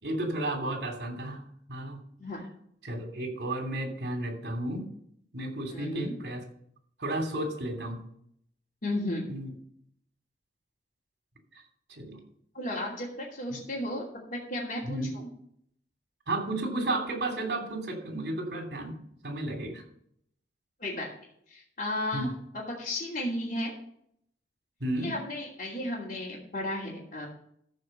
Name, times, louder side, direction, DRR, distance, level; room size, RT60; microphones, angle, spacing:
voice 1, 0.0-1.4 1.7-2.0 2.8-4.8 5.3-6.4 7.0-8.0 9.3-9.5 12.0-12.2 13.5-13.6 14.8-15.1 16.3-19.0 19.2-19.8 22.1-22.3 24.8-25.1, right 1 dB, 70° right, 3 dB, 3.0 m, -32 dB
voice 2, 5.7-6.1 8.8-9.3 12.5-14.0 14.3-15.3 20.8-21.1 21.5-22.3 22.5-23.7 25.0-27.3, left 1 dB, 50° left, -8 dB, 2.9 m, -34 dB
14.0 x 4.9 x 6.6 m, 0.68 s
head